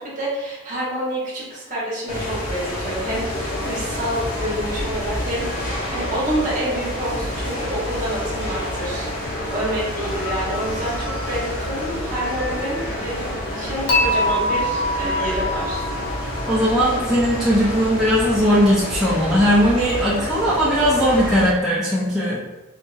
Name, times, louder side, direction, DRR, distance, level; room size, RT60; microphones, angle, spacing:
voice 1, 0.0-15.9, right 1 dB, 40° right, -6 dB, 1.0 m, -28 dB
sound 1, 2.1-21.5, left 1 dB, 75° left, 1.1 m, -28 dB
Dishes pots and pans / Chink clink, 13.9-17.0, left 1 dB, 60° left, 0.7 m, -23 dB
voice 2, 16.5-22.4, equal, ahead, -10 dB, 0.5 m, -18 dB
3.8 x 2.5 x 2.4 m, 1.1 s
head